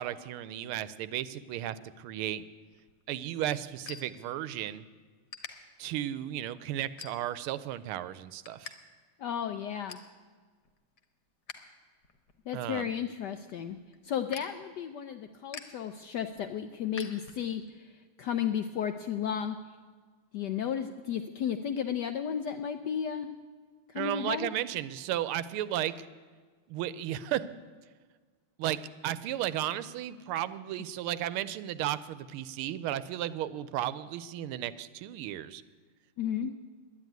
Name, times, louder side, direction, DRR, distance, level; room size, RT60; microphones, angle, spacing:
voice 1, 0.0-2.4 3.1-4.8 5.8-8.7 12.5-12.9 23.9-26.1 26.7-27.5 28.6-28.8 29.0-35.6, right 12 dB, 80° right, 15 dB, 1.4 m, -34 dB
sound 1, 2.7-4.8 5.1-5.5 6.1-6.3 6.8-7.5 7.9-8.7 9.0-9.1 9.5-10.1 10.6-11.6 11.9-17.7, left 6 dB, 55° left, 1.5 m, -48 dB
voice 2, 9.2-10.0 12.5-13.8 14.0-17.9 18.2-19.6 20.3-23.3 23.9-24.5 36.2-36.5, left 8 dB, 80° left, 8 dB, 0.9 m, -33 dB
11.0 x 9.8 x 9.2 m, 1.5 s
omnidirectional pair, 2.4 m